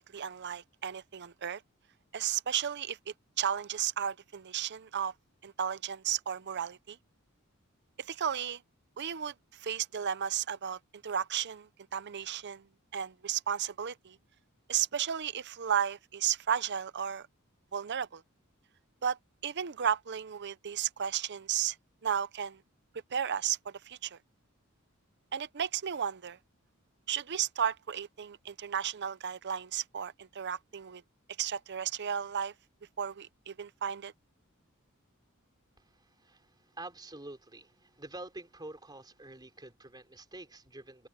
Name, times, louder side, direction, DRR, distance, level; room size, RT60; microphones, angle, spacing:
voice 1, 0.1-1.6 2.1-5.1 5.4-7.0 8.0-8.6 9.0-12.6 12.9-14.2 14.7-17.3 17.7-18.2 19.0-21.8 22.0-22.6 23.1-24.2 25.3-26.4 27.1-31.0 31.4-32.5 33.0-34.1, right 8 dB, 55° right, 0.7 m, -34 dB
voice 2, 35.8-41.1, right 2 dB, 20° right, 3.7 m, -47 dB
open air
head